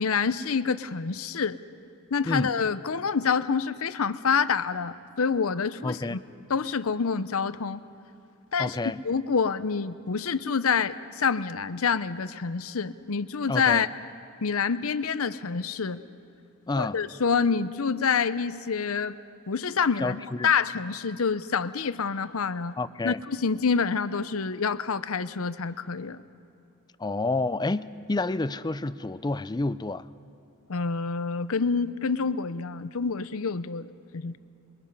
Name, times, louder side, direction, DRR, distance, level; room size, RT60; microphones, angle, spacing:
voice 1, 0.0-1.6 2.1-6.2 6.5-7.8 8.5-8.8 9.0-13.9 14.4-16.0 16.8-19.2 19.5-22.7 23.0-26.2 30.7-34.4, left 5 dB, 70° left, 0.7 m, -27 dB
voice 2, 5.8-6.2 8.6-9.0 13.5-13.9 16.7-17.0 20.0-20.5 22.8-23.2 27.0-30.1, left 2 dB, 20° left, 0.5 m, -29 dB
27.0 x 23.0 x 5.5 m
head